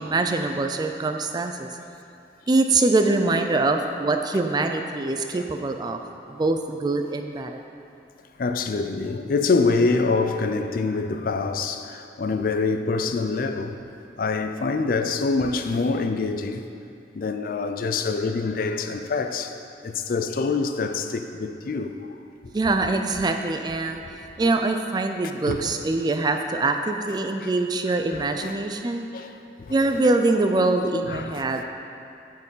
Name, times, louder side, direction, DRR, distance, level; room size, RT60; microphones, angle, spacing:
voice 1, 0.0-1.7 2.5-6.0 6.3-7.6 22.5-24.0 24.4-29.1 29.7-31.7, right 2 dB, 25° right, 0.3 m, -23 dB
voice 2, 8.4-13.8 14.2-16.6 17.1-19.5 19.8-21.9 25.5-25.7 27.4-27.5 28.1-28.6 29.1-29.3 29.6-29.8 31.1-31.7, left 4 dB, 50° left, 0.4 m, -25 dB
8.0 x 4.6 x 5.5 m
head